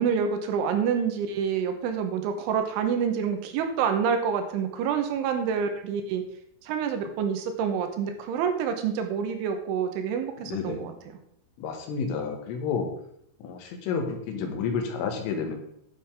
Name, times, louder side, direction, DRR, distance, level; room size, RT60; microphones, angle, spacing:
voice 1, 0.0-6.2 6.6-10.9, right 7 dB, 80° right, 6 dB, 3.3 m, -27 dB
voice 2, 10.4-11.0 11.6-12.9 13.4-15.5, left 5 dB, 85° left, 3 dB, 4.1 m, -30 dB
10.0 x 9.6 x 3.6 m, 0.72 s
omnidirectional pair, 5.7 m